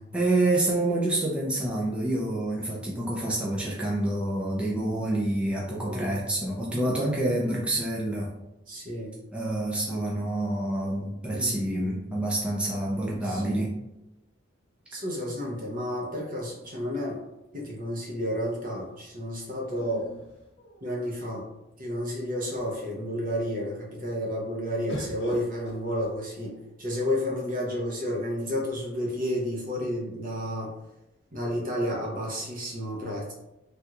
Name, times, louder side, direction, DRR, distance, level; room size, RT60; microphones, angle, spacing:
voice 1, 0.1-8.3 9.3-13.7, right 1 dB, 5° right, -5 dB, 0.5 m, -27 dB
voice 2, 5.9-6.2 8.7-9.2 11.3-11.6 13.2-13.7 14.9-17.2 17.5-20.1 20.8-21.4 21.8-30.7 31.3-33.3, equal, 45° right, -2 dB, 0.7 m, -31 dB
sound 1, 16.6-17.7 19.7-21.2 21.9-22.0 22.3-22.9 24.9-26.8 27.7-28.4, equal, 65° left, 1.1 m, -44 dB
3.3 x 2.4 x 2.8 m, 0.92 s
head